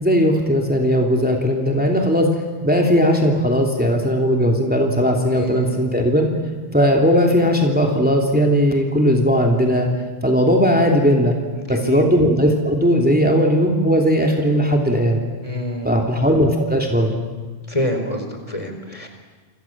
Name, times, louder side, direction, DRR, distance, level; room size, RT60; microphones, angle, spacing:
voice 1, 0.0-2.3 2.6-6.3 6.7-9.9 10.2-11.3 11.7-15.2 15.8-17.2, equal, 10° right, 1 dB, 3.1 m, -17 dB
voice 2, 5.3-5.7 11.5-12.1 15.4-16.1 17.7-19.1, equal, 35° left, 4 dB, 4.4 m, -27 dB
29.0 x 27.0 x 7.5 m, 1.4 s
omnidirectional pair, 1.1 m